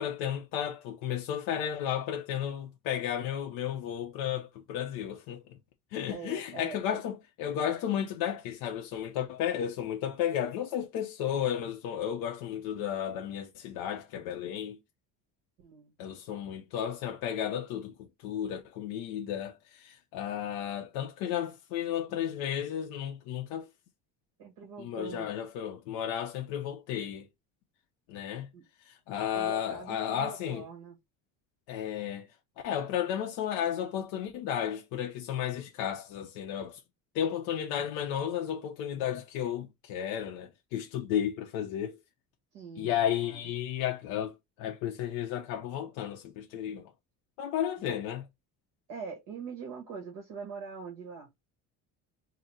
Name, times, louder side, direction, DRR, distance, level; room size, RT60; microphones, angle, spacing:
voice 1, 0.0-5.6 5.9-14.8 16.0-17.9 18.2-23.7 24.8-27.3 28.1-28.5 28.9-30.6 31.7-32.3 32.6-36.8 37.1-42.0 42.8-46.9 47.4-48.2, left 10 dB, 90° left, 0.8 m, -33 dB
voice 2, 6.1-7.0 15.6-15.9 24.4-25.3 28.5-28.6 29.3-30.9 42.5-42.9 43.2-43.4 47.8-47.9 48.9-51.3, right 5 dB, 60° right, 1.5 m, -43 dB
3.9 x 2.1 x 4.2 m
cardioid pair, 160°, 35 cm